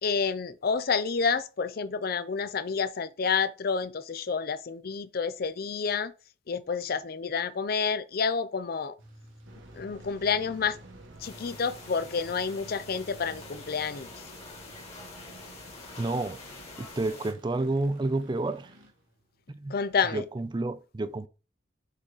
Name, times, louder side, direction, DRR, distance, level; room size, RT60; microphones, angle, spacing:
voice 1, 0.0-6.1 6.5-8.9 9.7-10.8 11.2-14.1 19.7-20.2, left 5 dB, 50° left, 0.5 m, -29 dB
sound 1, 9.0-20.1, right 1 dB, 85° right, 1.8 m, -54 dB
sound 2, 9.4-17.1, right 2 dB, 70° right, 1.4 m, -52 dB
sound 3, 11.2-17.3, left 3 dB, 30° left, 1.6 m, -47 dB
voice 2, 16.0-16.4 16.8-18.8 19.5-19.7 20.1-21.3, right 2 dB, 25° right, 0.4 m, -30 dB
6.2 x 3.9 x 4.0 m
head